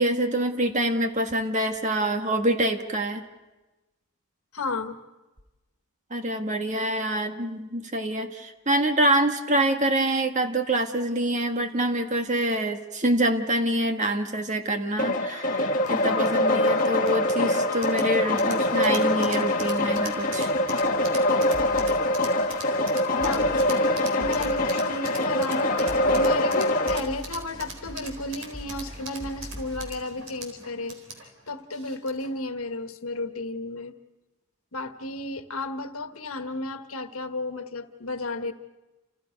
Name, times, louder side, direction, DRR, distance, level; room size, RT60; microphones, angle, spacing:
voice 1, 0.0-3.2 6.1-20.5, right 1 dB, 35° right, 5 dB, 1.7 m, -26 dB
voice 2, 4.5-5.0 23.2-23.9 24.2-33.9 34.7-38.5, left 2 dB, 90° left, 8 dB, 1.5 m, -33 dB
sound 1, 15.0-27.0, left 1 dB, 40° left, 1.7 m, -24 dB
sound 2, 15.8-32.4, right 3 dB, 70° right, 4.2 m, -43 dB
sound 3, 21.5-22.4 22.7-22.9 23.2-23.7 24.1-25.1 25.4-25.6 25.9-26.4 26.7-30.0, equal, 20° left, 6.7 m, -42 dB
29.5 x 28.5 x 5.3 m, 1.1 s
head